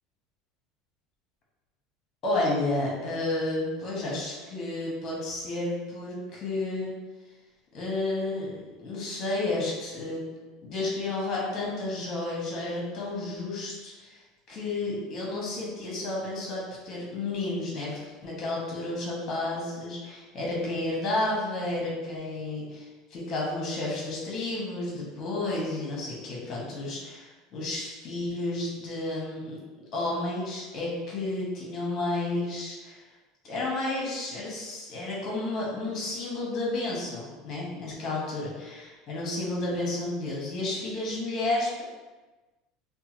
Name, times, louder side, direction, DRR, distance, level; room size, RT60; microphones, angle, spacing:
voice 1, 2.2-6.9 7.7-10.2 10.6-14.2 14.5-29.6 29.9-33.0 33.4-41.8, left 2 dB, 40° left, -3 dB, 1.0 m, -31 dB
2.7 x 2.2 x 3.0 m, 1.2 s
supercardioid pair, 125°, 0 cm